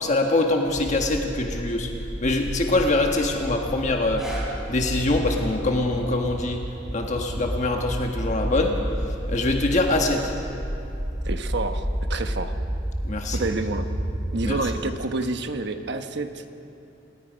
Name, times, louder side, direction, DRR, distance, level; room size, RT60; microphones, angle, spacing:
voice 1, 0.0-1.9 2.2-4.3 4.7-6.7 6.9-8.8 9.3-10.3 13.0-13.4 14.4-14.5, left 2 dB, 40° left, 2 dB, 1.4 m, -24 dB
sound 1, 0.7-14.6, equal, 35° right, 6.4 m, -31 dB
sound 2, 4.2-10.0 10.7-10.8, right 2 dB, 5° right, 4.7 m, -43 dB
voice 2, 11.2-12.5 13.3-13.9 14.3-16.5, right 2 dB, 65° right, 7 dB, 1.2 m, -28 dB
27.0 x 19.0 x 5.2 m, 2.9 s
head